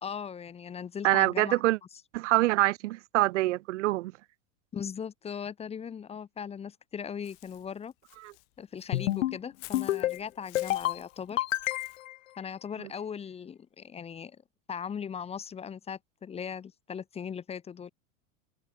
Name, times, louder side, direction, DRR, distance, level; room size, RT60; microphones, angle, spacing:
voice 1, 0.0-1.6 4.7-7.9 8.6-11.4 12.4-14.4 14.7-17.9, left 7 dB, 15° left, 1.4 m, -39 dB
voice 2, 1.0-1.8 2.1-4.1 8.2-8.3, right 18 dB, 65° right, 1.5 m, -25 dB
Walk footsteps / Bird, 7.2-12.0, left 40 dB or more, 50° left, 2.3 m, -51 dB
sound 1, 8.9-9.4 9.7-10.2 10.6-11.0 11.4-12.1, left 15 dB, 85° left, 1.2 m, -28 dB
supercardioid pair, 145°, 38 cm